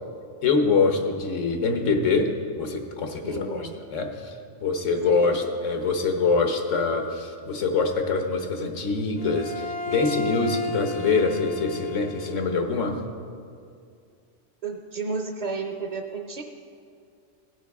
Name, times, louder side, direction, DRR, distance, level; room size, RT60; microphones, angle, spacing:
voice 1, 0.4-4.3 4.6-13.0, left 4 dB, 90° left, 5 dB, 1.4 m, -24 dB
voice 2, 3.2-3.8 5.0-5.4 14.6-16.4, right 4 dB, 45° right, 4 dB, 0.6 m, -32 dB
Bowed string instrument, 9.2-12.6, left 2 dB, 45° left, 0.5 m, -33 dB
17.0 x 8.9 x 3.5 m, 2.3 s
omnidirectional pair, 1.2 m